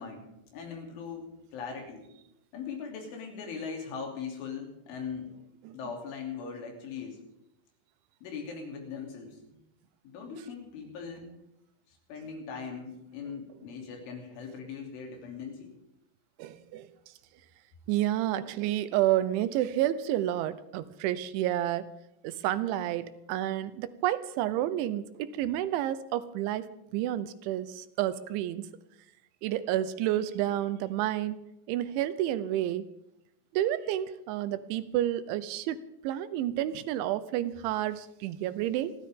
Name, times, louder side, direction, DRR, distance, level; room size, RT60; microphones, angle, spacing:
voice 1, 0.0-2.1 2.5-5.3 5.7-7.2 8.2-9.6 10.0-11.3 11.9-15.7, left 6 dB, 90° left, 1 dB, 5.7 m, -40 dB
voice 2, 16.4-16.9 17.9-21.9 22.2-26.7 26.9-28.7 29.4-31.4 31.7-32.9 33.5-35.8 36.0-38.9, right 13 dB, 85° right, 14 dB, 3.2 m, -30 dB
28.0 x 13.0 x 3.7 m, 0.86 s
omnidirectional pair, 5.4 m